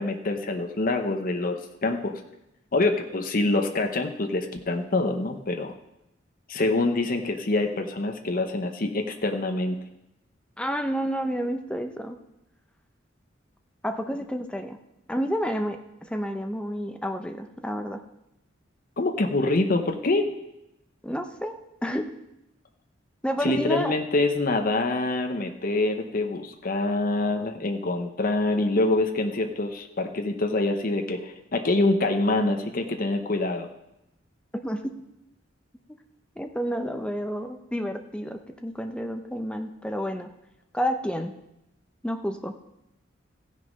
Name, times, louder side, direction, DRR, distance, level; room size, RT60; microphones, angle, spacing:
voice 1, 0.0-2.1 2.7-5.7 6.5-9.8 19.0-20.3 23.4-33.7, left 2 dB, 50° left, 5 dB, 0.9 m, -25 dB
voice 2, 10.6-12.2 13.8-14.8 15.1-18.0 21.0-22.1 23.2-23.9 34.5-34.8 36.4-40.3 40.7-41.4 42.0-42.5, equal, 5° left, 6 dB, 0.7 m, -30 dB
15.5 x 6.5 x 5.3 m, 0.88 s
head